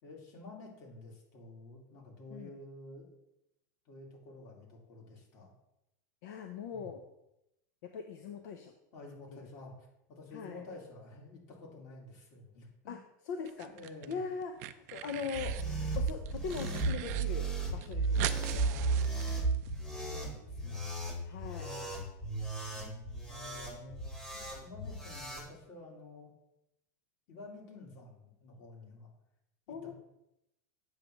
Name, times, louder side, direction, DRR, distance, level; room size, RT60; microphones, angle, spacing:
voice 1, 0.0-3.1 3.8-5.5 6.7-6.9 8.9-13.0 13.6-14.2 18.4-19.2 19.9-21.0 21.5-22.0 22.7-24.0 24.3-26.3 27.3-29.1 29.7-29.9, left 2 dB, 50° left, -2 dB, 2.5 m, -50 dB
voice 2, 6.2-7.0 7.8-8.7 9.3-9.5 10.3-10.6 12.9-13.0 13.3-13.7 14.1-15.5 15.9-18.7 21.2-21.7 29.7-29.9, left 6 dB, 70° left, 5 dB, 0.7 m, -41 dB
sound 1, 13.5-14.1 14.4-15.7 16.1-17.2 17.5-17.6 17.8-19.7, right 14 dB, 60° right, 0.5 m, -41 dB
sound 2, 15.3-25.5, right 3 dB, 5° left, 1.2 m, -35 dB
8.4 x 3.2 x 6.3 m, 0.87 s
supercardioid pair, 140°, 10 cm